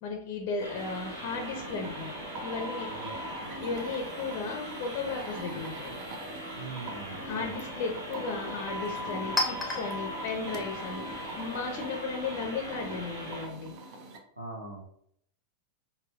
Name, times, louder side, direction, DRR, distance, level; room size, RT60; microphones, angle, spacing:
voice 1, 0.0-2.1 2.4-2.9 3.6-5.9 7.2-11.0 11.4-13.7, left 4 dB, 45° left, 2 dB, 0.6 m, -35 dB
sound 1, 0.6-14.2, right 1 dB, 40° right, 0.6 m, -42 dB
sound 2, 0.6-13.5, equal, 65° right, 1.2 m, -41 dB
Chink clink, 6.4-11.9, left 1 dB, 10° left, 0.8 m, -39 dB
voice 2, 6.5-7.5 14.4-14.8, right 3 dB, 80° right, -3 dB, 0.8 m, -41 dB
5.4 x 2.3 x 2.4 m, 0.68 s
figure-of-eight pair, 90°, 0 cm